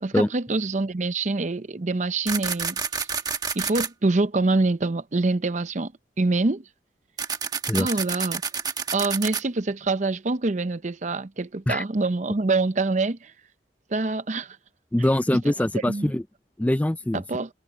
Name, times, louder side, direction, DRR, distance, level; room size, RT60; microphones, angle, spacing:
voice 1, 0.0-3.1 3.5-5.9 6.2-6.6 7.8-8.4 8.9-13.3 13.9-14.6 15.9-16.1 17.1-17.5, right 3 dB, 45° right, 0.7 m, -25 dB
sound 1, 2.3-3.9 7.2-9.4, right 5 dB, 20° right, 1.2 m, -28 dB
voice 2, 14.9-16.2 16.6-17.2, left 1 dB, 10° left, 0.3 m, -23 dB
head